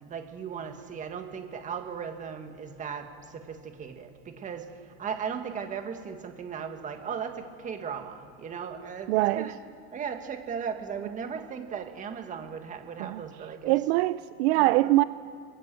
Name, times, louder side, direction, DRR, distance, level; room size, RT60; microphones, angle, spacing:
voice 1, 0.0-9.5 9.9-13.8 14.6-14.9, right 7 dB, 25° right, 6 dB, 1.7 m, -37 dB
voice 2, 9.1-9.5 13.0-13.2 13.6-15.0, right 18 dB, 70° right, 15 dB, 0.6 m, -23 dB
21.5 x 16.0 x 7.6 m, 2.4 s
supercardioid pair, 155°, 33 cm